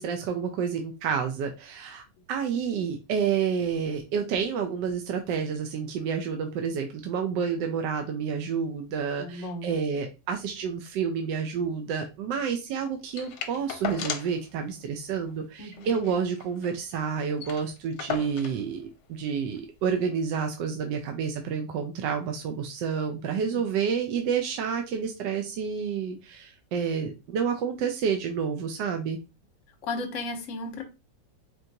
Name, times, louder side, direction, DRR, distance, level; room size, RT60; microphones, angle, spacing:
voice 1, 0.0-29.2, right 6 dB, 80° right, 4 dB, 1.2 m, -29 dB
voice 2, 9.2-9.7 15.6-16.0 23.5-23.6 29.8-30.8, left 2 dB, 50° left, 4 dB, 1.1 m, -35 dB
sound 1, 13.2-14.4 14.8-14.9 15.1-15.3 15.7-16.8 17.1-17.2 17.4-18.6 19.5-19.6, left 9 dB, 70° left, 1.1 m, -36 dB
4.3 x 3.1 x 2.7 m, 0.27 s
omnidirectional pair, 1.9 m